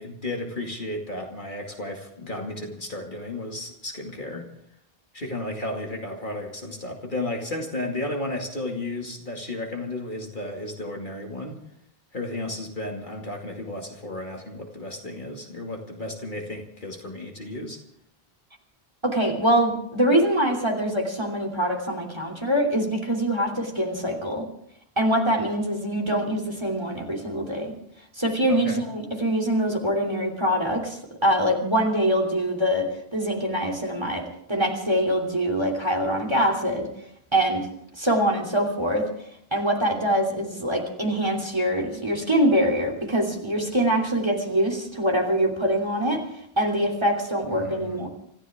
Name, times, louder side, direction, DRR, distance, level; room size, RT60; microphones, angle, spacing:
voice 1, 0.0-4.5 5.1-11.6 12.1-17.8 28.5-28.8 47.5-48.1, left 1 dB, 50° left, 1 dB, 2.5 m, -33 dB
voice 2, 19.0-24.4 25.0-27.7 28.2-36.9 37.3-37.7 38.0-39.1 39.5-46.2 46.6-48.1, equal, 25° right, 2 dB, 3.1 m, -24 dB
26.5 x 14.5 x 3.6 m, 0.71 s
omnidirectional pair, 1.0 m